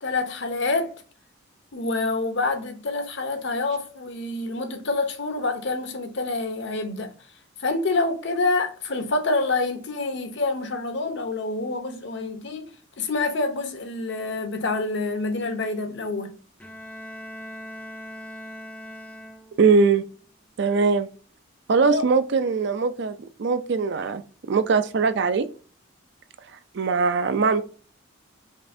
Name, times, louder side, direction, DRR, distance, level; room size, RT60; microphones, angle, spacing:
voice 1, 0.0-0.9 1.7-7.1 7.6-16.3 21.9-22.0, left 3 dB, 55° left, 0.7 m, -27 dB
Bowed string instrument, 16.6-19.8, equal, 5° left, 0.4 m, -40 dB
voice 2, 19.6-20.0 20.6-21.1 21.7-24.2 24.5-25.5 26.7-27.6, right 4 dB, 55° right, 0.4 m, -21 dB
5.2 x 2.6 x 2.6 m
head